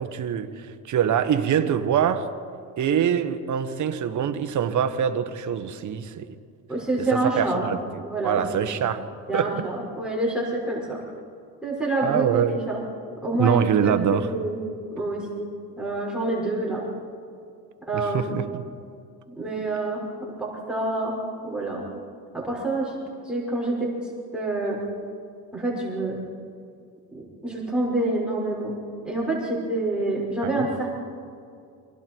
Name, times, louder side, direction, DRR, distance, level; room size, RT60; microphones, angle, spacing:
voice 1, 0.0-2.3 2.8-6.3 7.0-7.8 8.2-9.1 9.3-9.7 12.0-12.7 13.4-14.3 17.9-18.4 30.4-30.7, right 8 dB, 50° right, 9 dB, 1.5 m, -24 dB
voice 2, 6.7-7.7 8.0-8.8 9.3-11.0 11.6-12.8 13.2-14.0 14.3-14.6 14.9-15.5 15.8-16.8 17.9-18.4 19.4-20.1 20.4-21.8 22.4-22.9 23.3-23.9 24.3-24.8 25.5-26.2 27.1-28.7 29.0-30.9, right 2 dB, ahead, -5 dB, 5.9 m, -27 dB
29.0 x 25.5 x 4.7 m, 2.4 s
cardioid pair, 130°, 39 cm